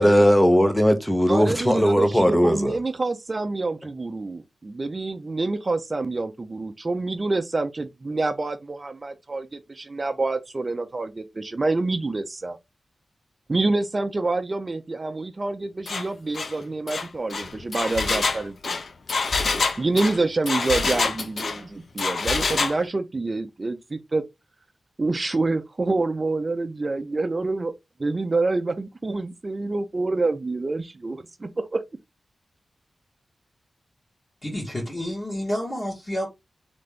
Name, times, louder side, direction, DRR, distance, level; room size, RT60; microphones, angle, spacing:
voice 1, 0.0-2.7, equal, 5° left, 0.7 m, -18 dB
voice 2, 1.3-12.6 13.5-18.8 19.8-24.2 25.0-27.7 28.0-31.8, right 3 dB, 30° right, 0.5 m, -27 dB
Engine, 15.9-16.1 16.3-16.5 16.9-21.6 22.0-22.8, left 4 dB, 60° left, 0.6 m, -26 dB
voice 3, 34.4-36.3, equal, 25° left, 1.8 m, -29 dB
3.9 x 3.3 x 3.5 m
wide cardioid pair, 130°, 0 cm